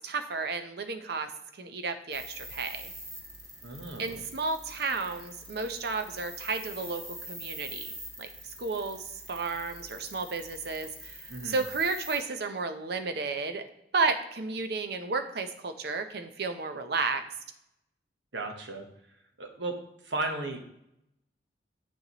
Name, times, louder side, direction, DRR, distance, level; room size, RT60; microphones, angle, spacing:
voice 1, 0.0-2.9 4.0-7.9 8.2-13.6 13.9-17.2, right 4 dB, 60° right, 7 dB, 0.7 m, -32 dB
sound 1, 2.1-12.2, right 1 dB, 20° right, 1.2 m, -44 dB
voice 2, 3.6-4.2 11.3-11.6 18.3-18.9 19.4-19.8 20.0-20.6, right 2 dB, 85° right, 4 dB, 1.1 m, -35 dB
6.7 x 6.4 x 3.0 m, 0.81 s
head